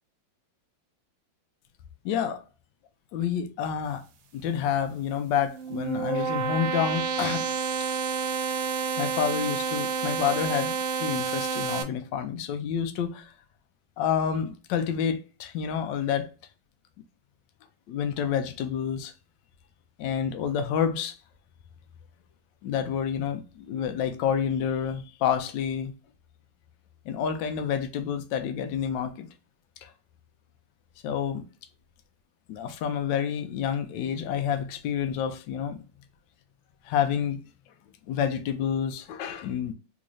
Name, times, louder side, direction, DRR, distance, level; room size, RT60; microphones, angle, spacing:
voice 1, 2.0-2.4 3.1-4.0 4.3-7.5 9.0-13.3 14.0-16.3 17.9-19.1 20.0-21.2 22.6-25.9 27.0-29.3 29.8-29.9 31.0-31.5 32.5-35.8 36.8-37.4 38.1-39.7, left 8 dB, 75° left, 1.2 m, -28 dB
sound 1, 5.3-11.8, right 6 dB, 85° right, 1.4 m, -29 dB
3.6 x 3.1 x 2.5 m
omnidirectional pair, 2.1 m